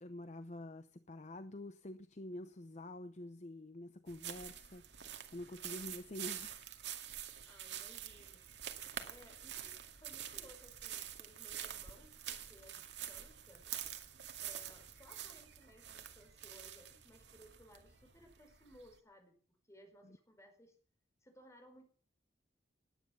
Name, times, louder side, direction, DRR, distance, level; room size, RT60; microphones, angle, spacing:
voice 1, 0.0-6.6 20.0-20.2, left 1 dB, 40° left, 0.7 m, -48 dB
sound 1, 4.1-19.0, right 10 dB, 70° right, 2.3 m, -47 dB
voice 2, 7.5-8.5 9.0-13.7 14.4-20.8 21.2-21.8, equal, 15° left, 4.8 m, -61 dB
sound 2, 8.0-18.3, equal, 50° right, 6.9 m, -70 dB
19.5 x 9.9 x 7.1 m
head